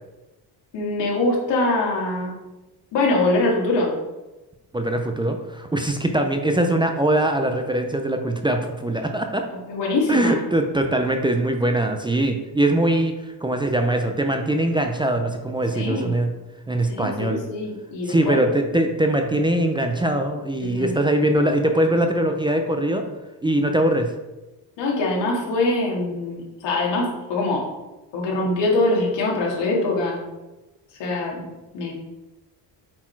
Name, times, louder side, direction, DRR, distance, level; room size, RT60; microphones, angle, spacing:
voice 1, 0.7-2.3 2.9-3.9 9.5-10.3 15.7-16.1 16.9-18.4 20.6-21.0 24.8-27.6 28.1-30.2 31.0-31.5 31.7-31.9, left 2 dB, 85° left, -2 dB, 2.4 m, -23 dB
voice 2, 4.7-9.4 10.1-16.3 16.7-17.4 18.1-23.0 23.4-24.1, right 1 dB, 10° right, 4 dB, 0.5 m, -22 dB
8.5 x 4.1 x 4.6 m, 1.1 s
cardioid pair, 140°, 42 cm